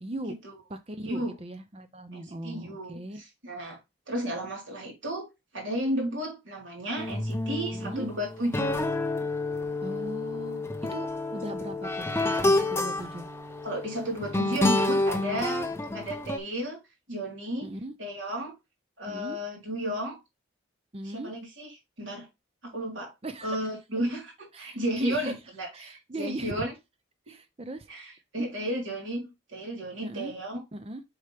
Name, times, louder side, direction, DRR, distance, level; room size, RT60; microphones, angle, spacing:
voice 1, 0.0-0.3 0.7-3.2 7.7-8.1 9.8-13.3 17.6-17.9 19.1-19.4 20.9-21.3 23.2-23.6 24.5-25.4 25.7-26.6 27.3-27.9 28.4-28.5 30.0-30.3 30.7-31.0, right 1 dB, 30° right, 0.6 m, -39 dB
voice 2, 1.0-1.3 2.1-3.8 4.1-5.3 5.5-8.9 13.6-16.8 17.1-17.7 18.0-18.6 19.0-20.2 21.1-21.7 22.0-22.3 22.6-23.1 23.4-26.7 27.3-27.4 27.9-30.6, right 1 dB, 70° right, 3.6 m, -33 dB
sound 1, 7.0-16.4, left 2 dB, 10° left, 0.5 m, -29 dB
7.0 x 4.4 x 3.3 m
head